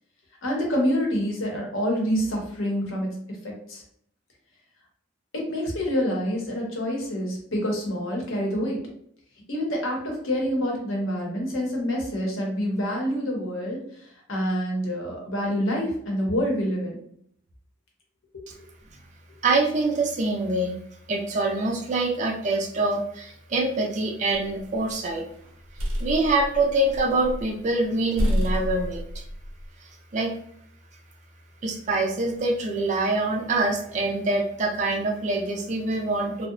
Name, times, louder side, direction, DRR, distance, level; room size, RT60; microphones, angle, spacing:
voice 1, 0.4-3.1 3.4-3.8 5.3-8.8 9.5-13.8 14.3-17.0 18.3-18.4, equal, 75° left, -1 dB, 0.8 m, -27 dB
voice 2, 19.4-20.8 21.1-25.3 26.0-29.0 29.8-30.3 31.6-36.5, right 2 dB, 35° right, 1 dB, 0.3 m, -25 dB
sound 1, 24.4-24.9 25.4-27.5 27.8-27.9 28.2-29.7, equal, 85° right, 0.6 m, -29 dB
2.7 x 2.0 x 2.4 m, 0.68 s
head